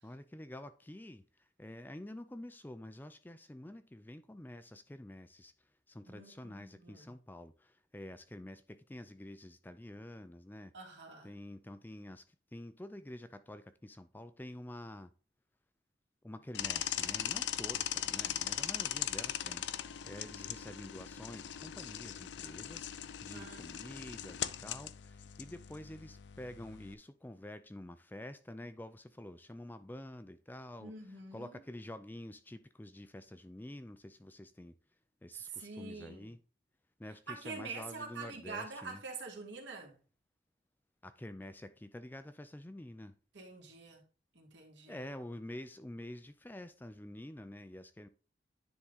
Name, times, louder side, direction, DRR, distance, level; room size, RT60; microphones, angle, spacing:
voice 1, 0.0-5.5 5.9-10.7 11.2-15.1 16.2-22.9 23.2-34.7 35.2-36.4 37.0-39.0 41.0-43.2 44.9-48.1, left 1 dB, 10° left, 0.4 m, -48 dB
voice 2, 6.0-7.1 10.7-11.3 23.3-23.7 30.8-31.5 35.5-36.3 37.3-40.0 43.3-44.0 44.3-45.0, right 4 dB, 75° right, 2.3 m, -46 dB
sound 1, 16.5-26.9, left 11 dB, 70° left, 0.5 m, -39 dB
9.9 x 3.7 x 3.9 m
head